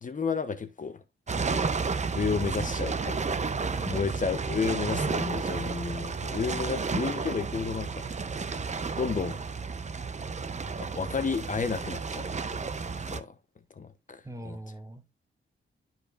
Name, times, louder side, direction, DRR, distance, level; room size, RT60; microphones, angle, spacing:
voice 1, 0.0-1.0 1.4-1.6 2.1-3.5 3.9-8.0 9.0-9.4 10.8-12.6 13.1-13.3 13.8-14.6, left 5 dB, 40° left, 0.9 m, -32 dB
sound 1, 1.3-13.2, right 4 dB, 35° right, 0.7 m, -32 dB
voice 2, 3.7-4.2 14.2-15.2, right 1 dB, 15° right, 1.2 m, -42 dB
12.5 x 4.4 x 2.5 m
wide cardioid pair, 100°, 21 cm